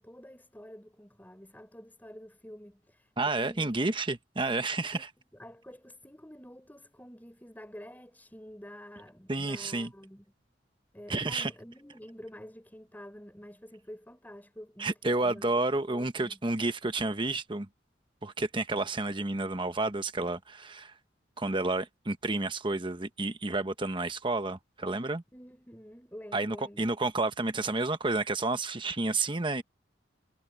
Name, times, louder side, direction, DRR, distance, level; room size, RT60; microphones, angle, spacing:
voice 1, 0.0-3.8 4.9-5.0 5.3-10.2 10.9-15.5 15.9-16.4 25.3-26.8, equal, 10° left, 5.9 m, -48 dB
voice 2, 3.2-5.1 9.3-9.9 11.1-11.5 14.8-17.7 18.2-20.9 21.4-25.2 26.3-29.6, right 2 dB, 25° right, 1.1 m, -30 dB
head